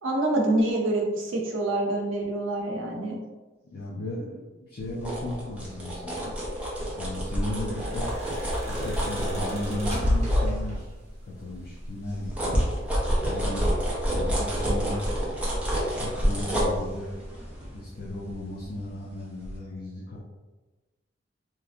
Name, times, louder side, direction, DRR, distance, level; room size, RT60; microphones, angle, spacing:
voice 1, 0.0-3.2, right 1 dB, 85° right, 0 dB, 0.6 m, -26 dB
voice 2, 3.7-6.3 6.9-8.2 8.6-10.9 11.2-12.6 13.2-13.7 14.1-15.1 16.0-17.2 17.7-20.2, left 1 dB, 55° left, -5 dB, 0.5 m, -35 dB
sound 1, 4.8-11.1 11.5-19.0 19.4-19.6, equal, 5° right, 0.6 m, -29 dB
sound 2, 7.5-11.1 12.2-13.0 13.4-13.7, left 1 dB, 35° right, 0.9 m, -30 dB
3.0 x 2.5 x 2.4 m, 1.2 s
head